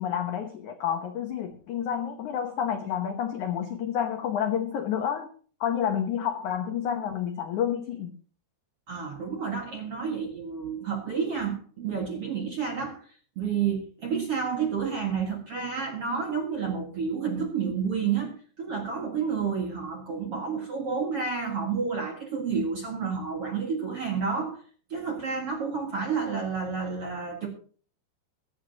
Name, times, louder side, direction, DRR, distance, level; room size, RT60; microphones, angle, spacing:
voice 1, 0.0-5.3 5.6-8.1, left 9 dB, 75° left, 5 dB, 1.8 m, -29 dB
voice 2, 8.9-13.1 13.4-24.6 24.9-27.5, right 6 dB, 50° right, 1 dB, 1.9 m, -30 dB
23.5 x 8.7 x 2.9 m, 0.42 s
omnidirectional pair, 5.2 m